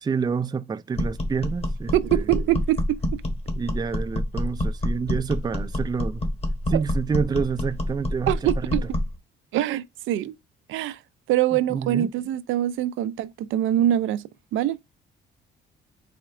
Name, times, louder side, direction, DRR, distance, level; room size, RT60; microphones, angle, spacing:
voice 1, 0.0-2.3 3.6-6.2 6.7-8.7 11.5-12.1, right 6 dB, 20° right, 0.4 m, -28 dB
sound 1, 0.9-9.2, left 1 dB, 30° left, 1.3 m, -27 dB
voice 2, 1.9-3.0 6.7-6.8 8.3-8.8 9.5-10.4 10.7-11.0 11.3-14.2 14.5-14.8, right 13 dB, 85° right, 0.4 m, -24 dB
4.2 x 2.4 x 4.7 m
cardioid pair, 90°, 20 cm